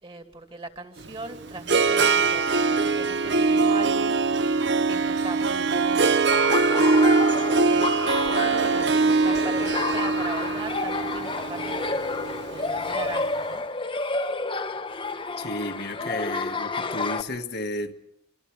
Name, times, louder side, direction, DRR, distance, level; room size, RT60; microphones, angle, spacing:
voice 1, 0.0-4.2 4.9-6.2 6.6-7.1 7.5-12.0 12.5-13.6, right 2 dB, 30° right, 2.7 m, -39 dB
Harp, 1.0-13.2, right 4 dB, 60° right, 0.8 m, -23 dB
Laughter, 6.3-17.2, left 3 dB, 25° left, 1.2 m, -30 dB
voice 2, 15.4-17.9, left 1 dB, 55° left, 1.6 m, -32 dB
26.5 x 25.0 x 4.8 m
head